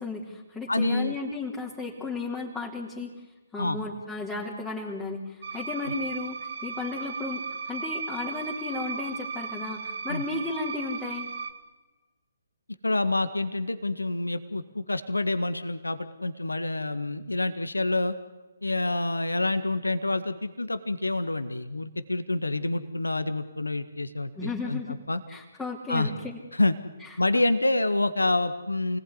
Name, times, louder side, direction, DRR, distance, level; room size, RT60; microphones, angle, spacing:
voice 1, 0.0-3.1 3.5-11.3 24.3-25.0 25.3-26.4 27.0-27.1 27.4-27.5, left 3 dB, 10° left, -4 dB, 3.5 m, -34 dB
voice 2, 0.7-1.2 3.6-3.8 5.9-6.0 10.1-10.2 12.8-18.2 18.6-25.2 25.9-26.1 26.5-26.7 27.2-29.0, left 2 dB, 85° left, 11 dB, 1.7 m, -27 dB
sound 1, 5.4-11.5, right 5 dB, 55° right, 2.6 m, -36 dB
28.5 x 20.0 x 9.7 m, 1.2 s
figure-of-eight pair, 140°, 0 cm